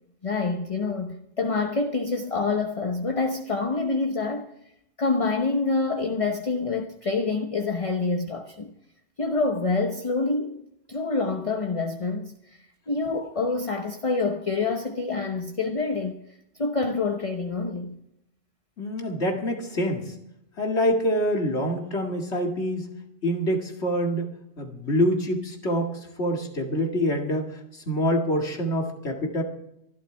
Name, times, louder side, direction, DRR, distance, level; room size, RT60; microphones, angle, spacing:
voice 1, 0.2-4.5 5.0-8.7 9.2-10.6 10.9-16.2 16.6-18.0, left 3 dB, 35° left, 1.0 m, -27 dB
voice 2, 18.8-20.1 20.6-22.9 23.2-24.3 24.6-29.4, equal, 80° left, 2.4 m, -26 dB
24.5 x 12.0 x 3.5 m
omnidirectional pair, 1.1 m